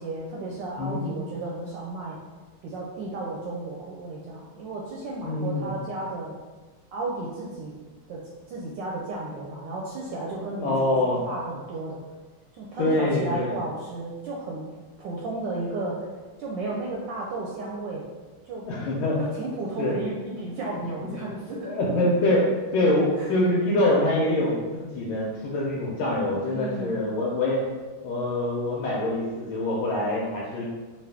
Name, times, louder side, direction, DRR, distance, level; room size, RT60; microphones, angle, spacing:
voice 1, 0.0-2.2 2.6-6.3 6.9-7.7 8.1-8.2 8.5-12.0 12.5-14.7 15.0-16.1 16.4-18.0 18.4-18.6 19.2-22.0 23.1-23.3 26.5-27.0, right 2 dB, 75° right, -3 dB, 1.1 m, -33 dB
voice 2, 0.8-1.3 5.2-5.8 10.4-11.2 12.8-13.6 18.7-19.3 19.8-19.9 20.9-27.6 28.0-30.7, left 1 dB, 85° left, -5 dB, 1.5 m, -25 dB
3.9 x 2.4 x 3.4 m, 1.3 s
omnidirectional pair, 2.2 m